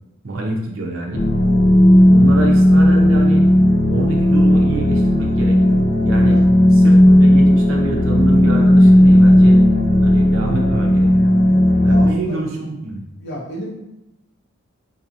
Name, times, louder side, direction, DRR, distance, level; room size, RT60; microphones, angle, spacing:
voice 1, 0.2-1.3 2.0-3.5 3.9-6.4 6.7-9.6 10.0-11.3 11.8-13.0, right 2 dB, 80° right, 0 dB, 0.7 m, -26 dB
sound 1, 1.1-12.1, left 1 dB, 40° left, 0.4 m, -13 dB
voice 2, 11.8-12.4 13.2-13.8, equal, 55° left, -4 dB, 0.8 m, -31 dB
3.9 x 2.8 x 2.6 m, 0.91 s
head